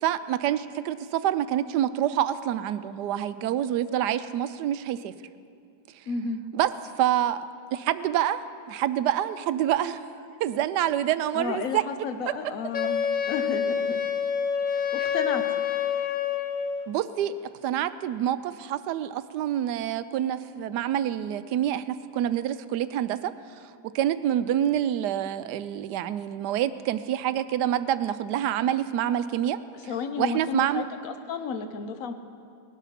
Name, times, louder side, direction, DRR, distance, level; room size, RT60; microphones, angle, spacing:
voice 1, 0.0-5.1 6.5-6.7 7.0-7.5 7.7-10.1 10.4-11.8 16.9-17.3 17.6-23.3 23.9-29.6 30.2-30.8, right 11 dB, 75° right, 13 dB, 1.1 m, -27 dB
voice 2, 6.1-6.4 11.3-14.0 14.7-15.6 29.7-32.1, left 5 dB, 55° left, 8 dB, 1.2 m, -32 dB
Wind instrument woodwind instrument, 12.7-16.9, left 7 dB, 75° left, 0.4 m, -27 dB
19.5 x 11.0 x 5.8 m, 2.3 s
omnidirectional pair, 1.9 m